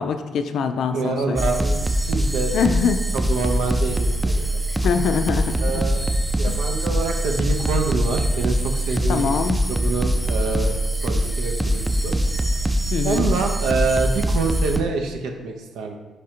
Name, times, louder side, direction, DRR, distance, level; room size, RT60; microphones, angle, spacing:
voice 1, 0.0-1.4 2.5-3.0 4.8-5.8 6.5-6.6 9.1-9.6 12.9-13.3, left 6 dB, 70° left, 8 dB, 0.3 m, -23 dB
voice 2, 0.9-2.5 3.1-4.6 5.6-6.0 6.4-9.4 9.7-12.2 13.0-16.0, right 4 dB, 90° right, 3 dB, 0.5 m, -26 dB
sound 1, 1.4-14.8, right 1 dB, 5° right, 0.3 m, -23 dB
3.7 x 3.2 x 4.3 m, 1.3 s
cardioid pair, 90°, 0 cm